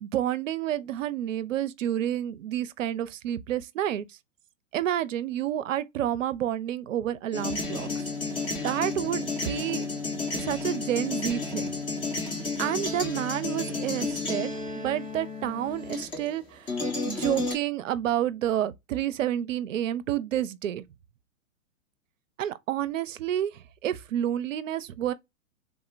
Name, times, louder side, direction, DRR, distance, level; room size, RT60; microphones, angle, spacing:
voice 1, 0.0-4.1 4.7-8.1 8.6-9.9 10.3-11.8 12.6-16.8 17.1-20.8 22.4-25.1, right 11 dB, 65° right, 0.5 m, -29 dB
sound 1, 7.3-16.4 16.7-17.6, left 3 dB, 15° left, 0.5 m, -32 dB
3.6 x 2.0 x 2.4 m
figure-of-eight pair, 110°, 41 cm